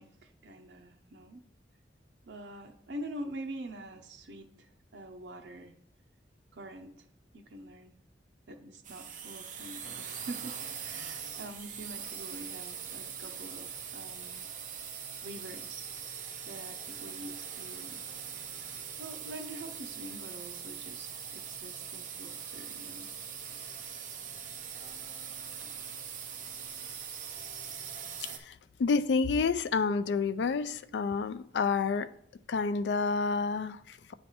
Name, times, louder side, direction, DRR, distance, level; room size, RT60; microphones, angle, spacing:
voice 1, 0.0-1.4 2.3-5.7 6.5-7.1 7.3-8.0 8.5-14.5 15.2-15.9 16.5-18.0 19.0-23.1 25.6-25.7, right 1 dB, 85° right, 4 dB, 0.7 m, -45 dB
sound 1, 8.8-28.4, right 7 dB, 45° right, 0.7 m, -42 dB
voice 2, 28.2-28.5 28.8-32.1 32.5-34.1, left 4 dB, 80° left, 13 dB, 0.4 m, -29 dB
8.6 x 3.3 x 4.2 m, 0.72 s
head